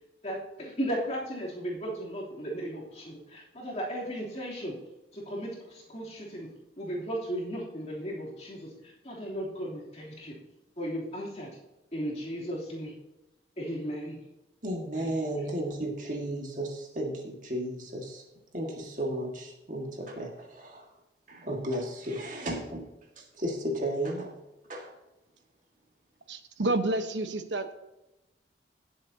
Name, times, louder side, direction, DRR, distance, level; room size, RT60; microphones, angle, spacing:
voice 1, 0.2-4.8 5.1-6.5 6.8-10.4 10.8-11.5 11.9-12.9 13.6-14.2 14.9-15.1, equal, 35° left, -5 dB, 3.2 m, -36 dB
voice 2, 14.6-18.2 18.5-20.9 21.3-22.9 23.2-24.3 24.7-24.9, right 1 dB, 45° right, 0 dB, 1.9 m, -34 dB
voice 3, 26.3-27.7, right 2 dB, 85° right, 8 dB, 1.1 m, -29 dB
18.0 x 7.8 x 2.9 m, 0.98 s
head